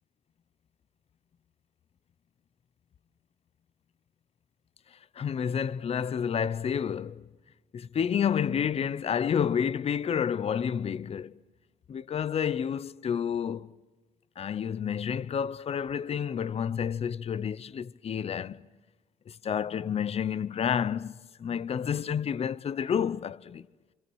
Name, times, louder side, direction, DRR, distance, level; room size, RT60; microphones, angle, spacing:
voice 1, 5.1-7.3 7.7-11.4 11.9-13.7 14.4-18.7 19.3-23.7, left 8 dB, 35° left, 0.7 m, -30 dB
28.5 x 26.5 x 6.3 m
cardioid pair, 110°, 17 cm